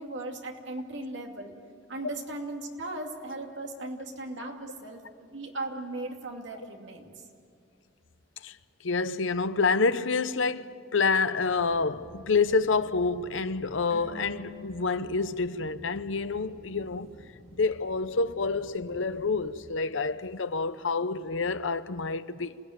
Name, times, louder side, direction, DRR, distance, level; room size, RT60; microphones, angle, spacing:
voice 1, 0.0-1.6 1.9-7.1, right 2 dB, 65° right, 2.5 m, -37 dB
voice 2, 8.8-17.1 17.5-22.5, left 4 dB, 75° left, 0.8 m, -28 dB
sound 1, 11.5-19.7, equal, 15° right, 5.0 m, -52 dB
sound 2, 13.9-17.2 17.5-17.6, equal, 55° left, 6.0 m, -50 dB
28.0 x 18.0 x 9.4 m
head